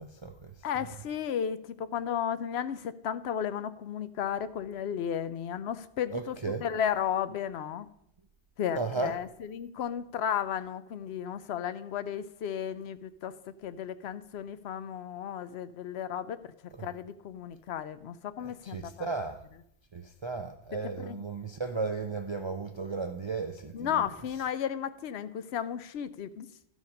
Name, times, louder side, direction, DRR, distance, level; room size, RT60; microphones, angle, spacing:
voice 1, 0.0-0.5 6.1-6.6 8.7-9.1 16.8-16.9 18.4-19.4 19.9-24.0, right 4 dB, 45° right, 0.3 m, -35 dB
voice 2, 0.6-7.9 8.6-13.4 13.6-16.4 16.8-19.1 21.0-21.2 23.7-26.5, left 9 dB, 75° left, 0.8 m, -34 dB
13.0 x 5.0 x 5.2 m
omnidirectional pair, 1.1 m